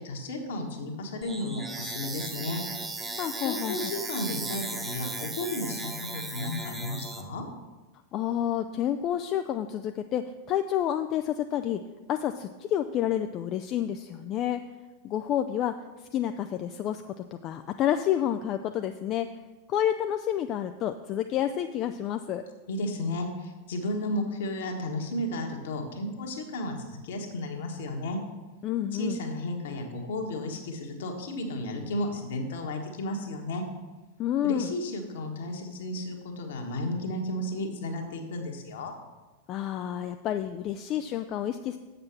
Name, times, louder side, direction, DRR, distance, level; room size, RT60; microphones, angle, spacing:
voice 1, 0.0-2.6 3.4-7.4 22.7-28.2 28.9-33.6 34.4-38.9, left 1 dB, 60° left, 3 dB, 1.5 m, -33 dB
sound 1, 1.2-7.2, right 3 dB, 15° right, 1.1 m, -36 dB
voice 2, 3.2-3.9 8.1-11.8 12.1-14.6 15.0-17.1 17.4-19.3 19.7-22.4 28.6-29.2 34.2-34.7 39.5-41.8, left 10 dB, 35° left, 8 dB, 0.4 m, -29 dB
7.5 x 6.7 x 5.9 m, 1.2 s
figure-of-eight pair, 90°, 0 cm